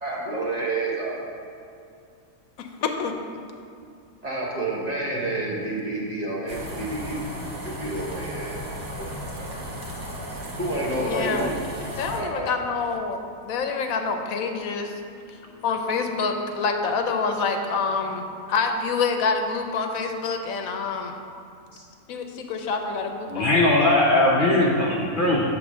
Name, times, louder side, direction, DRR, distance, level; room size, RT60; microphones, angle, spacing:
voice 1, 0.0-1.4 4.2-7.3 7.6-8.6 9.0-9.1 9.4-9.5 10.6-11.5 12.0-12.5, right 2 dB, 35° right, -4 dB, 0.9 m, -29 dB
voice 2, 2.6-3.1 11.0-11.5 12.0-13.2 13.4-14.9 15.3-21.2 22.1-23.6, left 4 dB, 80° left, 4 dB, 1.0 m, -27 dB
sound 1, 6.5-12.2, equal, 90° right, 1.5 m, -35 dB
voice 3, 23.3-25.4, left 1 dB, 50° left, -4 dB, 0.6 m, -19 dB
7.2 x 3.4 x 6.1 m, 2.4 s
omnidirectional pair, 1.4 m